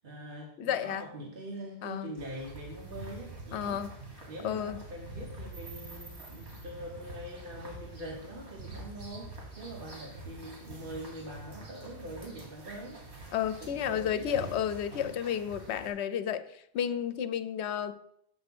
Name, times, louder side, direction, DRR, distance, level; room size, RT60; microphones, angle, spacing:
voice 1, 0.0-3.8 4.3-13.0 13.6-14.4, equal, 55° right, -2 dB, 1.2 m, -43 dB
voice 2, 0.6-1.0 1.8-2.1 3.5-3.9 4.4-4.8 13.3-17.9, left 9 dB, 90° left, 12 dB, 0.9 m, -32 dB
sound 1, 2.2-15.9, right 2 dB, 85° right, 2.0 m, -46 dB
7.7 x 3.5 x 6.0 m, 0.72 s
omnidirectional pair, 1.1 m